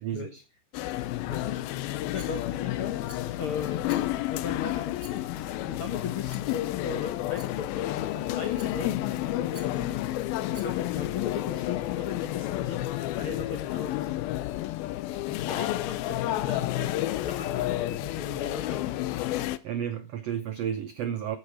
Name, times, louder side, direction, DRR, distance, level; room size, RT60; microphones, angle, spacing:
voice 1, 0.0-0.4 19.6-21.4, right 9 dB, 80° right, 1.4 m, -32 dB
sound 1, 0.7-19.6, left 15 dB, 90° left, 2.6 m, -31 dB
voice 2, 1.0-3.9 4.3-9.9 10.4-14.2 15.2-19.0, left 7 dB, 75° left, 1.2 m, -37 dB
Rattle, 2.2-2.7 3.1-3.4 3.9-4.4 5.0-5.5 6.3-6.6 7.4-7.8 8.6-9.0 9.5-9.9 10.5-11.0, right 3 dB, 30° right, 2.7 m, -52 dB
13.5 x 8.2 x 5.0 m
omnidirectional pair, 4.2 m